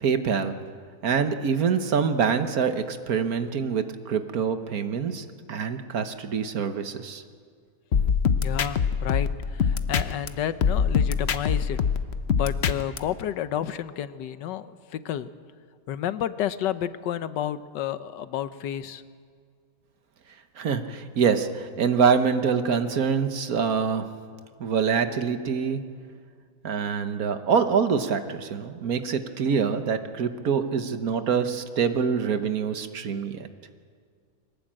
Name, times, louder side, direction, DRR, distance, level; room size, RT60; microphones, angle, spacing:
voice 1, 0.0-0.5 1.0-7.2 20.6-24.0 24.6-25.8 26.6-33.5, right 6 dB, 60° right, 9 dB, 1.5 m, -25 dB
sound 1, 7.9-10.3 10.6-13.0, left 6 dB, 50° left, 0.8 m, -23 dB
voice 2, 8.4-11.8 12.3-15.3 15.9-19.0, left 10 dB, 90° left, 13 dB, 1.5 m, -31 dB
22.5 x 19.0 x 8.8 m, 2.1 s
omnidirectional pair, 1.8 m